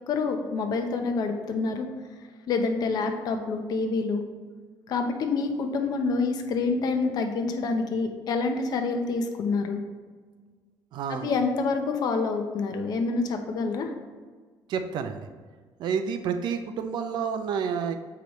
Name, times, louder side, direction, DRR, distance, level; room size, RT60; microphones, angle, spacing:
voice 1, 0.1-1.9 2.5-4.2 4.9-9.8 11.1-13.9, left 4 dB, 50° left, 5 dB, 0.7 m, -27 dB
voice 2, 10.9-11.4 14.7-15.3 15.8-17.9, right 6 dB, 60° right, 8 dB, 0.5 m, -29 dB
6.7 x 4.9 x 3.0 m, 1.5 s
cardioid pair, 165°, 8 cm